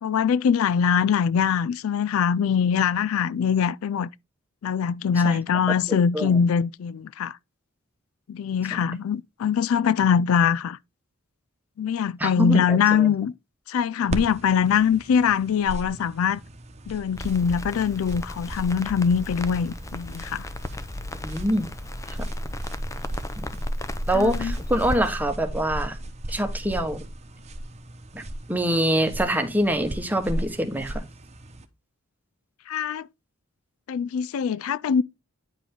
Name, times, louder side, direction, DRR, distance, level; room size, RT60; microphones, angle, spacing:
voice 1, 0.0-4.1 4.6-7.4 8.3-10.8 11.8-13.3 13.7-16.4 16.9-20.5 24.1-24.6 32.7-33.1 33.9-35.0, left 7 dB, 75° left, 0.3 m, -23 dB
voice 2, 5.9-6.4 12.2-13.1 21.2-21.7 23.4-23.5 24.1-26.0 26.3-27.0 28.1-28.2 28.5-31.0, equal, 10° right, 1.1 m, -25 dB
sound 1, 14.1-31.7, right 1 dB, 30° right, 1.0 m, -37 dB
Crackle, 17.1-25.0, left 1 dB, 15° left, 0.6 m, -34 dB
9.9 x 5.1 x 3.6 m
head